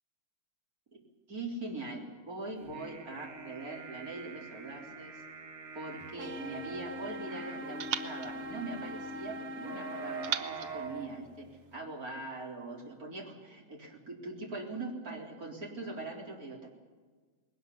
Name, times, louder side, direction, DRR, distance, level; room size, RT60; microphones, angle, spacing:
voice 1, 1.3-5.2 5.7-16.7, right 2 dB, 25° right, -1 dB, 4.0 m, -42 dB
sound 1, 2.6-11.1, right 4 dB, 50° right, 2.2 m, -45 dB
sound 2, 6.0-7.2 7.8-9.4 10.2-11.8, right 9 dB, 65° right, 1.5 m, -41 dB
sound 3, 6.2-10.3, left 1 dB, 80° right, 0.8 m, -42 dB
21.0 x 19.0 x 8.3 m, 1.4 s
omnidirectional pair, 3.6 m